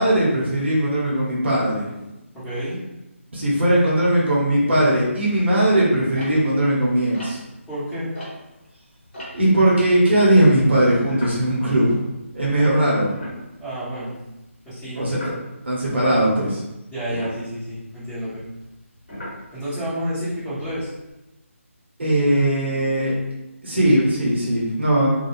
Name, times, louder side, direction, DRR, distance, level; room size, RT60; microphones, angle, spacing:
voice 1, 0.0-1.9 3.3-7.4 9.3-12.0 12.3-13.1 15.0-15.2 15.6-16.6 22.0-23.1 23.6-25.1, right 1 dB, 55° right, -5 dB, 0.9 m, -19 dB
voice 2, 2.3-2.8 7.7-8.1 12.6-12.7 13.6-14.1 14.6-15.1 16.9-18.4 19.5-20.9, equal, 5° left, -15 dB, 1.2 m, -29 dB
sound 1, 6.2-8.7 9.0-12.5 12.8-12.9 13.1-14.0 15.1-15.4 17.0-19.9 20.5-21.1, left 1 dB, 50° left, 1.3 m, -38 dB
2.4 x 2.3 x 3.0 m, 0.97 s
figure-of-eight pair, 155°, 7 cm